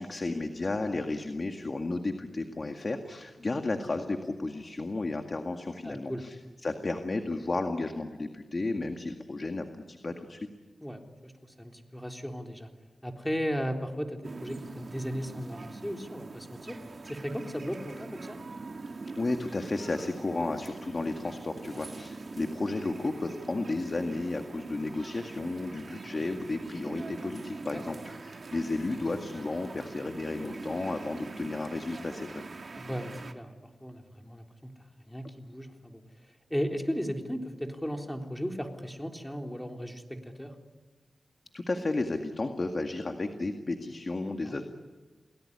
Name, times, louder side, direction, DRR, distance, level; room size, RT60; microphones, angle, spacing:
voice 1, 0.0-6.4 6.6-10.4 19.2-32.4 41.5-44.6, left 2 dB, 40° left, 5 dB, 2.0 m, -33 dB
voice 2, 5.8-6.2 10.8-12.7 13.0-16.8 17.0-18.4 27.7-27.8 32.8-34.7 35.1-36.0 36.5-40.6 44.4-44.6, equal, 5° left, 3 dB, 3.7 m, -36 dB
sound 1, 14.2-33.3, right 3 dB, 50° right, 2.1 m, -43 dB
29.5 x 19.5 x 10.0 m, 1.3 s
wide cardioid pair, 75°, 0 cm